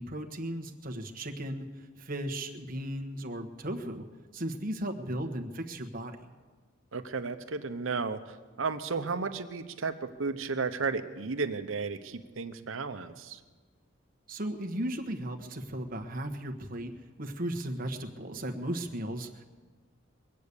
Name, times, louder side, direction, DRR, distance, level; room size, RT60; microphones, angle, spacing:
voice 1, 0.0-1.7 2.0-4.0 4.3-6.2 14.3-16.9 17.2-19.4, right 1 dB, 45° right, 3 dB, 1.2 m, -36 dB
voice 2, 6.9-13.4, right 4 dB, 80° right, 10 dB, 0.9 m, -33 dB
22.5 x 8.5 x 6.8 m, 1.4 s
head